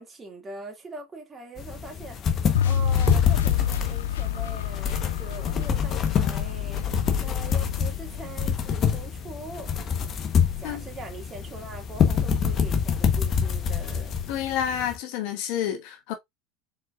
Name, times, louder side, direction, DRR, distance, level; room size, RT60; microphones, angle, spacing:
voice 1, 0.0-2.2 2.6-9.7 10.6-14.2, right 2 dB, 25° right, 2.2 m, -42 dB
sound 1, 1.6-15.0, left 7 dB, 40° left, 1.0 m, -26 dB
sound 2, 2.5-8.7, left 10 dB, 80° left, 0.4 m, -28 dB
voice 2, 14.3-16.1, left 9 dB, 60° left, 1.1 m, -29 dB
4.4 x 4.4 x 2.5 m
hypercardioid pair, 85°, 0 cm